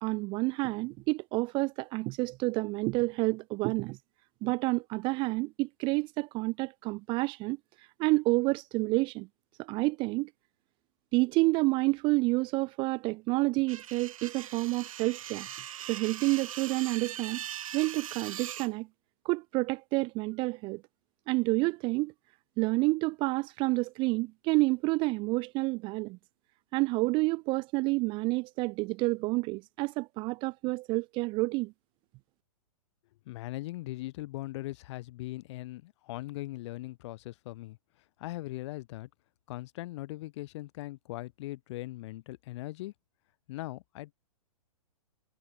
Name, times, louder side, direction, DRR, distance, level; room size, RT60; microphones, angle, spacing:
voice 1, 0.0-4.0 4.4-7.6 8.0-9.3 9.7-10.3 11.1-15.5 15.9-17.4 17.7-18.9 19.3-20.8 21.3-22.1 22.6-26.2 26.7-31.7, right 24 dB, 25° right, 0.5 m, -29 dB
sound 1, 13.7-18.7, right 11 dB, 65° right, 2.6 m, -41 dB
voice 2, 33.3-37.8 38.2-39.1 39.5-42.9 43.5-44.1, left 18 dB, 50° left, 6.0 m, -40 dB
hypercardioid pair, 125°, 19 cm